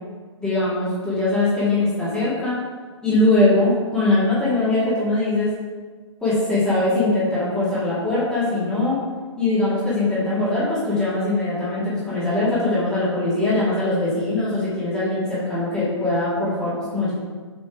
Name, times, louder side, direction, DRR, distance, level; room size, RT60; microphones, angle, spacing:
voice 1, 0.4-2.6 3.0-5.5 6.2-9.0 9.4-17.1, left 2 dB, 5° left, -10 dB, 2.6 m, -21 dB
7.6 x 5.2 x 4.9 m, 1.4 s
figure-of-eight pair, 125°, 16 cm